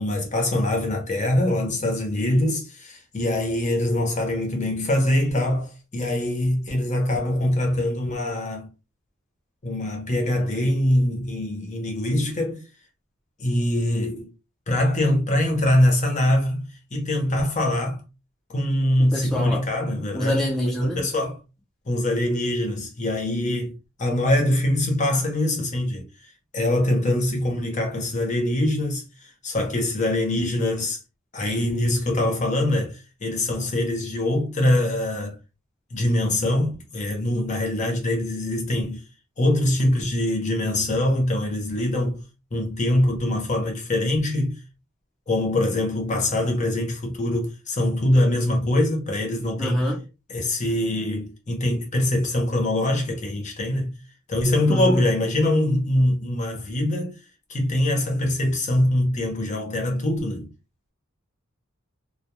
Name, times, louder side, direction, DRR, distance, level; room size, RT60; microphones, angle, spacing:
voice 1, 0.0-8.7 9.6-12.6 13.4-14.3 14.7-18.0 18.5-20.5 20.8-21.4 21.9-26.1 26.5-31.0 31.3-35.4 35.9-39.0 39.4-42.2 42.5-44.6 45.3-49.8 50.3-54.0 54.3-57.2 57.5-60.5, left 1 dB, 35° left, 0.7 m, -23 dB
voice 2, 19.1-19.6 20.1-21.0 49.6-50.0 54.7-55.1, equal, ahead, 0.6 m, -25 dB
2.2 x 2.2 x 2.9 m
head